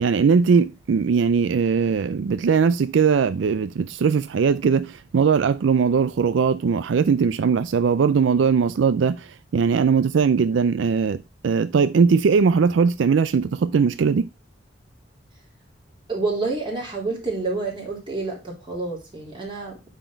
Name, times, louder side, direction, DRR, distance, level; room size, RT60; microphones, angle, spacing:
voice 1, 0.0-14.3, right 5 dB, 80° right, 0.4 m, -20 dB
voice 2, 16.1-19.8, right 3 dB, 30° right, 3.2 m, -28 dB
9.1 x 4.2 x 4.4 m
head